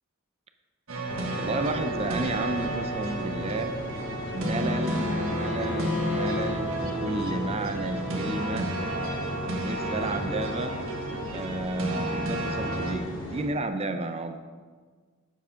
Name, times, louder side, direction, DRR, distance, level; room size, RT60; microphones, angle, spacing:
sound 1, 0.9-13.0, right 1 dB, 70° right, 1.4 m, -31 dB
sound 2, 1.1-13.4, left 1 dB, 20° left, 2.4 m, -38 dB
voice 1, 1.4-3.7 4.3-8.7 9.6-10.9 11.3-14.4, right 2 dB, 30° right, 8 dB, 0.5 m, -32 dB
Bowed string instrument, 3.5-6.6, left 8 dB, 55° left, 0.7 m, -37 dB
7.3 x 6.9 x 5.6 m, 1.5 s
head